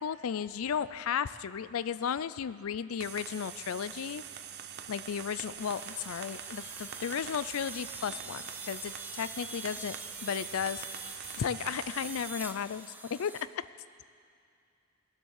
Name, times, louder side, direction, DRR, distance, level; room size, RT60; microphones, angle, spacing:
voice 1, 0.0-4.2 4.9-10.0 10.2-10.8 11.4-13.3, left 7 dB, 75° left, 15 dB, 0.4 m, -34 dB
sound 1, 3.0-12.3, right 8 dB, 50° right, 0.6 m, -44 dB
sound 2, 5.6-13.4, right 3 dB, 10° right, 0.5 m, -45 dB
20.5 x 7.6 x 6.5 m, 2.4 s
head